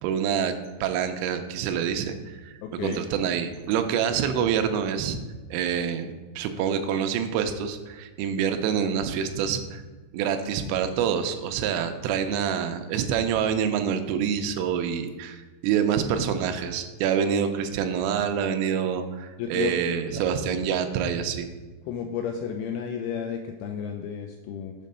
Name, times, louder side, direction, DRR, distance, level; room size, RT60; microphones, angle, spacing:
voice 1, 0.0-5.2 5.5-9.8 10.1-21.5, right 8 dB, 80° right, 7 dB, 3.1 m, -26 dB
voice 2, 2.6-3.0 19.4-19.8 20.1-20.3 21.9-24.7, left 7 dB, 85° left, 4 dB, 2.8 m, -32 dB
7.4 x 5.2 x 5.4 m, 1.3 s
omnidirectional pair, 6.0 m